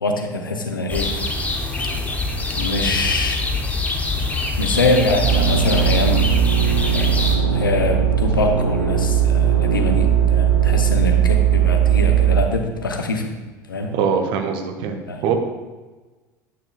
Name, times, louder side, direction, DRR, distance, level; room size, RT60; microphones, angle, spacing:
voice 1, 0.0-1.2 2.6-3.5 4.6-13.3 13.7-13.9 15.1-15.2, left 2 dB, 80° left, 4 dB, 0.7 m, -24 dB
sound 1, 0.9-7.4, left 2 dB, 15° left, 0.9 m, -24 dB
sound 2, 5.2-12.4, right 8 dB, 80° right, 0.6 m, -18 dB
voice 2, 13.9-15.4, right 6 dB, 50° right, 5 dB, 0.8 m, -22 dB
8.9 x 6.1 x 2.3 m, 1.2 s
figure-of-eight pair, 75°, 11 cm